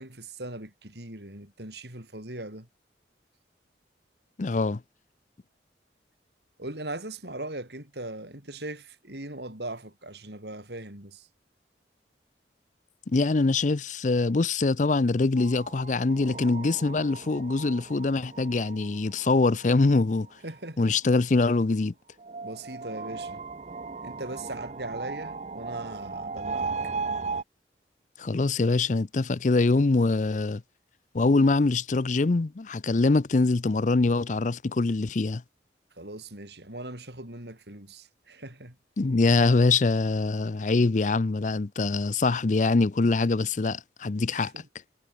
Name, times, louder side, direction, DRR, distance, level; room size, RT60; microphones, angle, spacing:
voice 1, 0.0-2.7 6.6-11.3 20.4-21.0 22.4-23.4 24.0-26.7 36.0-38.8 44.3-44.6, right 2 dB, 70° right, 6.2 m, -39 dB
voice 2, 4.4-4.8 13.1-20.3 20.8-21.9 28.2-30.6 31.1-35.4 39.0-44.5, left 3 dB, 45° left, 0.5 m, -24 dB
sound 1, 15.4-20.7 22.2-27.4, right 4 dB, 40° right, 0.6 m, -37 dB
head